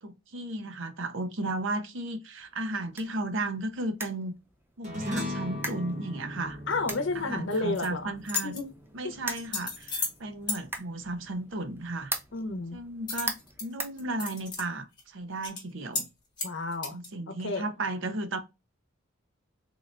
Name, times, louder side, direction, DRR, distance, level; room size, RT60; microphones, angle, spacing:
voice 1, 0.0-4.3 4.8-6.6 7.1-8.6 8.9-12.1 12.7-16.1 16.9-18.4, right 2 dB, 60° right, 0.6 m, -34 dB
sound 1, 2.4-14.7, right 2 dB, 10° right, 0.5 m, -42 dB
sound 2, 4.8-9.5, left 1 dB, 35° right, 1.2 m, -38 dB
voice 2, 6.7-8.1 8.4-8.7 9.0-9.1 12.3-12.8 16.4-17.0 17.3-17.7, left 3 dB, 60° left, 0.8 m, -31 dB
sound 3, 7.5-7.9 8.2-8.6 9.3-10.2 10.5-10.6 13.1-13.7 14.0-14.6 15.0-15.1 15.4-15.6 15.9-16.1 16.4-17.1, left 4 dB, 20° left, 1.2 m, -33 dB
3.7 x 3.2 x 2.4 m
head